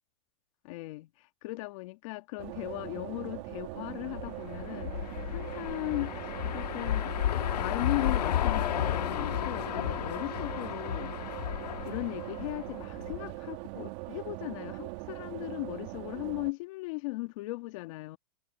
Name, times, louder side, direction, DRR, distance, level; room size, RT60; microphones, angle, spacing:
voice 1, 0.6-7.2 7.6-11.2 11.8-18.2, left 23 dB, 55° left, 2.2 m, -38 dB
sound 1, 2.4-16.5, right 23 dB, 50° right, 1.9 m, -41 dB
sound 2, 4.1-13.3, left 11 dB, 90° left, 1.7 m, -33 dB
supercardioid pair, 140°, 20 cm